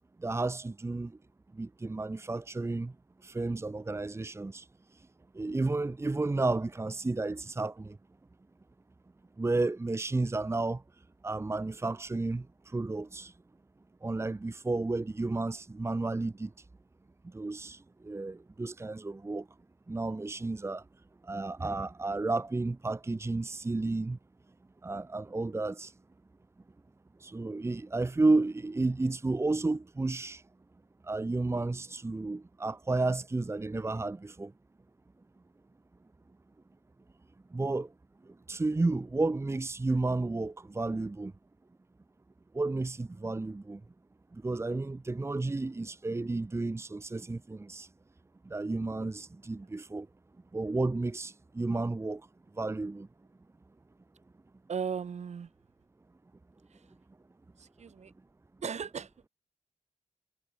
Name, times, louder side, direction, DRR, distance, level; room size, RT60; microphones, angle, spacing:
voice 1, 0.2-1.1 1.5-2.9 3.2-4.6 5.3-8.0 9.4-10.8 11.2-12.5 12.7-13.3 14.0-16.5 17.3-19.4 19.9-20.8 21.2-24.2 24.8-25.9 27.2-30.4 31.0-34.5 37.5-37.9 38.5-41.3 42.5-43.8 44.3-47.9 48.4-50.1 50.5-52.2 52.6-53.1, right 3 dB, 20° right, 1.2 m, -32 dB
voice 2, 54.7-55.5 57.6-58.1 58.6-59.1, right 6 dB, 75° right, 4.5 m, -36 dB
wide cardioid pair, 125°, 12 cm